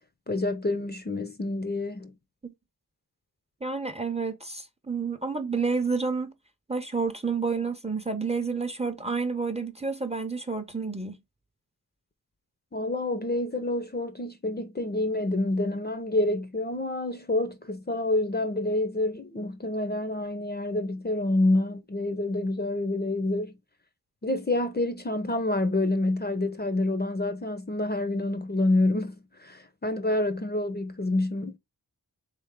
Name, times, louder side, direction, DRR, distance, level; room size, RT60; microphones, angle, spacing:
voice 1, 0.3-2.1 12.7-23.5 24.2-31.6, left 2 dB, 25° left, 0.6 m, -28 dB
voice 2, 3.6-6.3 6.7-11.2, right 4 dB, 15° right, 0.6 m, -29 dB
3.5 x 3.4 x 3.6 m
wide cardioid pair, 45°, 37 cm